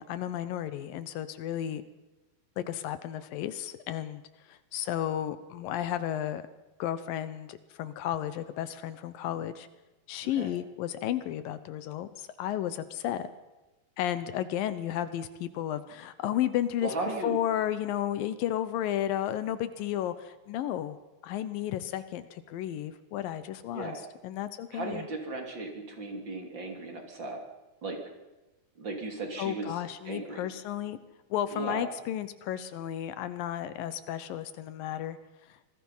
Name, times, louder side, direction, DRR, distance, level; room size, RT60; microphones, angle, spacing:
voice 1, 0.0-1.8 2.6-4.2 4.5-6.4 6.8-9.7 10.1-13.3 14.0-16.9 17.2-21.0 21.2-25.1 29.4-31.0 31.3-35.2, left 11 dB, 75° left, 13 dB, 2.6 m, -33 dB
voice 2, 16.8-17.4 23.7-24.0 24.7-27.4 27.8-28.0 28.8-29.7 30.0-30.4 31.5-31.9, right 2 dB, 30° right, 2 dB, 3.2 m, -36 dB
26.5 x 20.0 x 5.6 m, 1.1 s
omnidirectional pair, 4.3 m